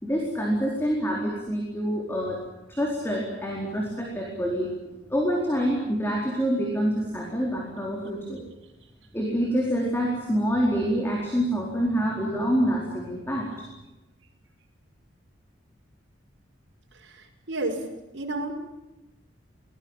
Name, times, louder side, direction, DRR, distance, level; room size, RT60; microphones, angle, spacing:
voice 1, 0.0-2.4 2.7-8.5 9.1-13.6, equal, 10° left, -1 dB, 4.3 m, -26 dB
voice 2, 17.0-17.8 18.1-18.5, right 2 dB, 65° right, 1 dB, 5.8 m, -31 dB
25.0 x 19.0 x 9.0 m, 1.0 s
head